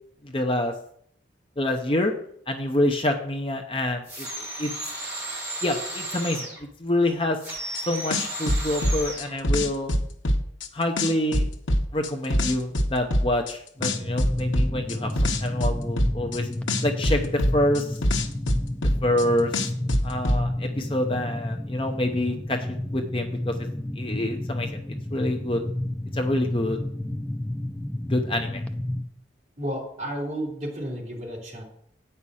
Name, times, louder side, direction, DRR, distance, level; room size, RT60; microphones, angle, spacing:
voice 1, 0.2-0.7 1.6-2.1 2.5-4.9 5.6-7.4 7.9-9.9 10.7-11.5 11.9-16.5 16.8-18.0 19.0-19.5 20.0-22.6 22.9-23.5 24.0-24.8 25.1-25.6 26.1-26.8 28.1-28.6, left 1 dB, 30° left, 4 dB, 0.7 m, -26 dB
sound 1, 4.0-6.6 7.4-9.3, right 1 dB, 10° right, 3.2 m, -34 dB
sound 2, 7.7-7.8 8.1-10.7 11.0-13.5 13.8-16.4 16.7-19.2 19.5-20.4, left 1 dB, 90° left, 1.0 m, -23 dB
sound 3, 13.8-29.0, left 1 dB, 5° left, 0.4 m, -31 dB
voice 2, 29.6-31.6, equal, 40° right, -4 dB, 3.3 m, -32 dB
8.7 x 5.6 x 6.2 m, 0.67 s
head